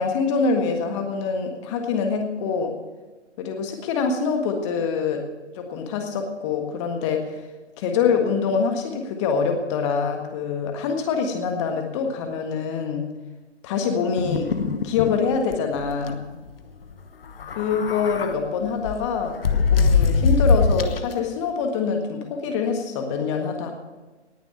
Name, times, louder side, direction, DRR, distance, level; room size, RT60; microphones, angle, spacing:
voice 1, 0.0-2.7 3.4-5.2 5.5-7.3 7.8-13.1 13.6-14.5 14.8-16.2 17.5-19.4 19.7-23.7, left 5 dB, 25° left, 4 dB, 1.6 m, -25 dB
sound 1, 14.2-15.2 15.5-15.6 15.9-16.1 17.3-18.3 18.8-21.1, left 5 dB, 55° left, 1.1 m, -21 dB
19.0 x 6.9 x 7.6 m, 1.3 s
figure-of-eight pair, 130°, 34 cm